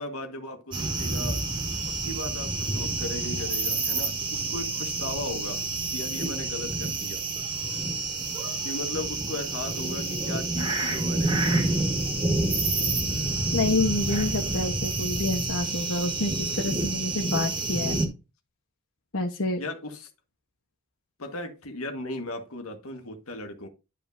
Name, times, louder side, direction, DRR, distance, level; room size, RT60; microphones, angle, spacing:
voice 1, 0.0-1.4 1.9-7.3 8.6-11.8 19.6-20.1 21.2-23.7, left 1 dB, 85° left, 1.7 m, -37 dB
sound 1, 0.7-18.1, right 3 dB, 20° right, 1.7 m, -29 dB
sound 2, 11.6-15.9, equal, 15° left, 0.8 m, -34 dB
voice 2, 13.5-18.1 19.1-19.6, left 2 dB, 70° left, 1.2 m, -28 dB
11.5 x 5.1 x 2.7 m
head